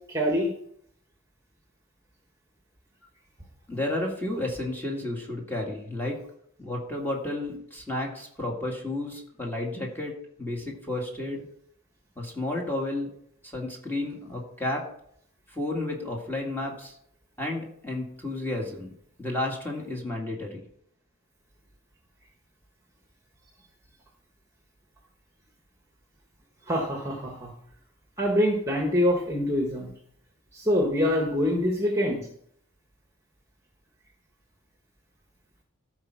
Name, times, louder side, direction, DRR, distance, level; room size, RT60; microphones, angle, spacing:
voice 1, 0.1-0.5 26.7-27.5 28.2-29.9 30.5-32.3, equal, 15° right, 1 dB, 1.3 m, -25 dB
voice 2, 3.7-6.2 6.6-11.4 12.2-13.1 13.4-14.9 15.5-17.0 17.4-18.9 19.2-20.6, left 2 dB, 10° left, -2 dB, 1.9 m, -32 dB
13.5 x 4.6 x 6.1 m, 0.69 s
head